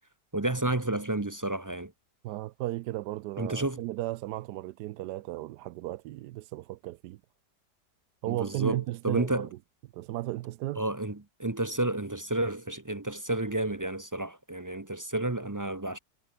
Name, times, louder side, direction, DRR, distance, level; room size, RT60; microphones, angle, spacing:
voice 1, 0.3-1.9 3.4-3.8 8.3-9.5 10.8-16.0, right 2 dB, 20° right, 0.5 m, -31 dB
voice 2, 2.2-7.2 8.2-9.5 9.9-10.8, right 16 dB, 80° right, 1.1 m, -35 dB
omnidirectional pair, 1.8 m